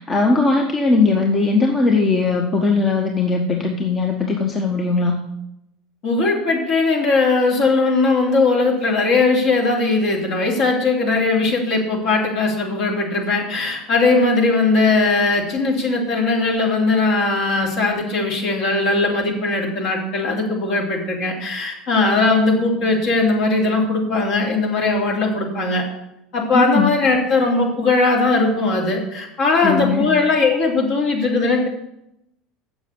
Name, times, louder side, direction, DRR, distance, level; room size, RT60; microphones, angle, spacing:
voice 1, 0.0-5.2 26.5-26.9 29.6-30.1, left 3 dB, 30° left, 2 dB, 1.2 m, -19 dB
voice 2, 6.0-25.8 26.3-31.7, left 3 dB, 55° left, -2 dB, 3.2 m, -19 dB
7.8 x 7.1 x 8.1 m, 0.84 s
figure-of-eight pair, 75°, 0 cm